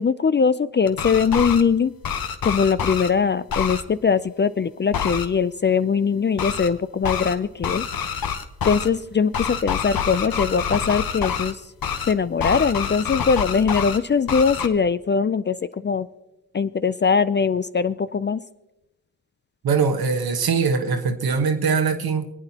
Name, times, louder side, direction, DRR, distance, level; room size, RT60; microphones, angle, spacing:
voice 1, 0.0-1.9 2.4-8.2 8.6-11.6 12.1-15.6 15.8-16.1 16.5-18.4, left 6 dB, 30° left, 0.4 m, -21 dB
sound 1, 0.9-1.6 2.0-3.1 3.5-3.8 4.9-5.3 6.4-6.7 7.0-7.3 7.6-8.9 9.3-11.5 11.8-12.1 12.4-14.0 14.3-14.7, left 7 dB, 60° left, 1.0 m, -26 dB
voice 2, 19.6-22.3, right 5 dB, 65° right, 1.3 m, -22 dB
25.5 x 8.9 x 2.9 m
supercardioid pair, 50°, 39 cm